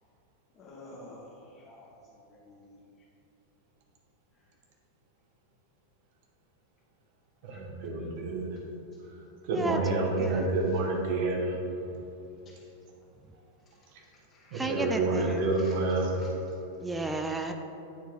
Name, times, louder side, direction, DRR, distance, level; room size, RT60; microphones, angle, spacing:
voice 1, 0.5-2.7 7.5-7.6 8.0-8.1 12.4-12.7 14.3-14.8 15.6-15.7 16.2-16.3, left 1 dB, 30° left, -5 dB, 1.0 m, -51 dB
voice 2, 7.4-8.5 9.4-11.6 14.5-16.1, right 2 dB, 50° right, -1 dB, 1.3 m, -28 dB
voice 3, 9.5-10.5 14.5-15.4 16.8-17.5, right 2 dB, 10° right, 5 dB, 0.4 m, -33 dB
9.1 x 4.4 x 3.5 m, 2.9 s
figure-of-eight pair, 90°, 0 cm